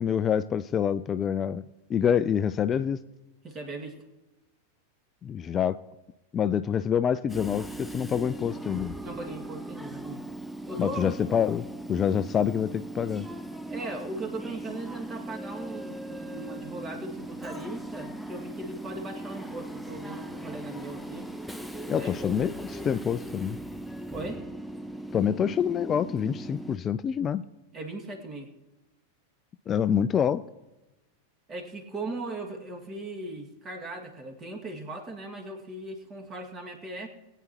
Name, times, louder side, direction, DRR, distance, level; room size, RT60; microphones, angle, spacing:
voice 1, 0.0-1.6 1.9-3.0 5.2-5.8 6.3-9.0 10.8-13.3 21.9-23.6 25.1-27.4 29.7-30.4, left 8 dB, 25° left, 14 dB, 0.4 m, -26 dB
voice 2, 3.4-4.1 9.0-10.2 10.7-11.1 13.7-21.3 21.9-22.4 24.1-24.4 27.7-28.5 31.5-37.1, right 2 dB, 25° right, 3 dB, 2.0 m, -38 dB
Train / Subway metro underground, 7.3-26.8, right 1 dB, ahead, 0.7 m, -39 dB
21.0 x 9.1 x 3.0 m, 1.0 s
figure-of-eight pair, 90°, 0 cm